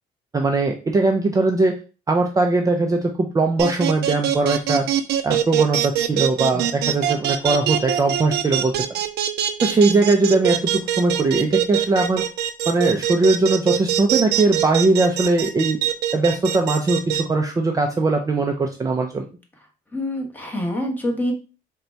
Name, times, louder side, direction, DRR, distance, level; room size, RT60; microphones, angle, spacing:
voice 1, 0.3-1.8 2.1-4.9 5.2-8.7 9.6-12.2 12.7-15.8 16.1-19.3, right 3 dB, 20° right, 2 dB, 0.5 m, -20 dB
sound 1, 3.6-17.2, right 11 dB, 75° right, 0.5 m, -22 dB
voice 2, 19.9-21.3, left 1 dB, 10° left, 1 dB, 1.1 m, -26 dB
3.8 x 2.3 x 4.4 m, 0.34 s
cardioid pair, 110°, 17 cm